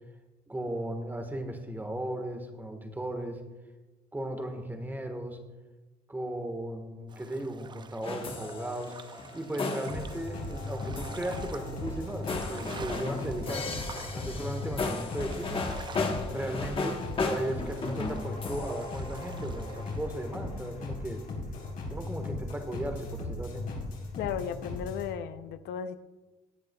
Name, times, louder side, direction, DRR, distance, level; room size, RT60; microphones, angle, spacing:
voice 1, 0.5-3.4 4.1-5.4 6.1-9.0 9.3-13.7 14.1-15.6 16.3-21.2 21.9-23.6, right 1 dB, 10° right, 5 dB, 1.4 m, -36 dB
sound 1, 7.1-20.1, right 5 dB, 25° right, 0.5 m, -49 dB
sound 2, 8.0-19.9, left 4 dB, 30° left, 1.2 m, -36 dB
sound 3, 9.9-25.1, left 2 dB, 55° left, 4.0 m, -38 dB
voice 2, 24.2-26.0, left 8 dB, 75° left, 11 dB, 0.6 m, -35 dB
18.0 x 8.8 x 2.3 m, 1.1 s
cardioid pair, 110°, 17 cm